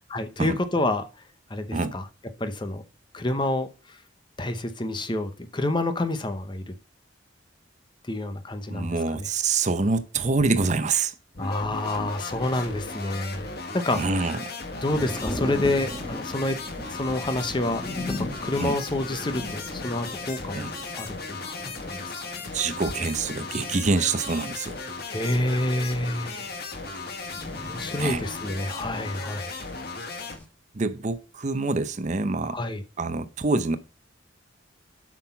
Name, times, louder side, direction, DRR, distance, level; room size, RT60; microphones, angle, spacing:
voice 1, 0.1-1.1 1.5-2.0 2.4-2.8 3.1-4.0 4.4-6.7 8.1-9.3 11.4-13.5 13.7-14.3 14.8-16.6 16.9-18.1 18.4-20.7 20.9-21.4 21.8-22.2 25.1-26.5 27.6-29.6 32.5-32.8, left 1 dB, 25° left, 0.8 m, -28 dB
voice 2, 8.7-11.1 13.9-14.4 18.6-18.7 20.5-20.7 22.5-24.8 28.0-28.2 30.7-32.6 33.0-33.8, right 3 dB, 40° right, 0.6 m, -26 dB
sound 1, 11.3-30.4, left 3 dB, 55° left, 1.4 m, -36 dB
sound 2, 14.9-30.4, left 1 dB, 5° left, 1.5 m, -39 dB
7.8 x 6.1 x 5.7 m
head